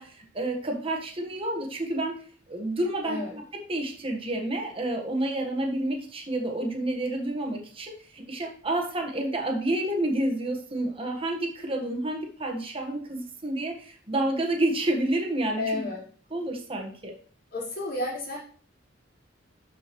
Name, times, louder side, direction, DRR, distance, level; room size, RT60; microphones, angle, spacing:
voice 1, 0.0-2.2 2.5-15.9 16.3-17.1, right 1 dB, 30° right, 2 dB, 1.4 m, -29 dB
voice 2, 15.6-16.0 17.5-18.4, left 2 dB, 50° left, -6 dB, 4.1 m, -31 dB
12.0 x 5.0 x 3.1 m, 0.43 s
head